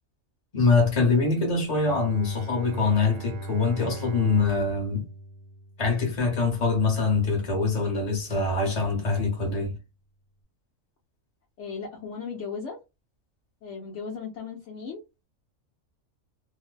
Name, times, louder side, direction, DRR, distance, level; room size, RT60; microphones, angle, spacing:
voice 1, 0.5-5.0 5.8-9.8, left 4 dB, 30° left, 0.9 m, -24 dB
Bowed string instrument, 1.7-7.4, right 1 dB, 45° right, 0.7 m, -40 dB
voice 2, 11.6-12.8 13.6-15.2, left 5 dB, 65° left, 0.9 m, -36 dB
2.6 x 2.1 x 2.3 m
omnidirectional pair, 1.4 m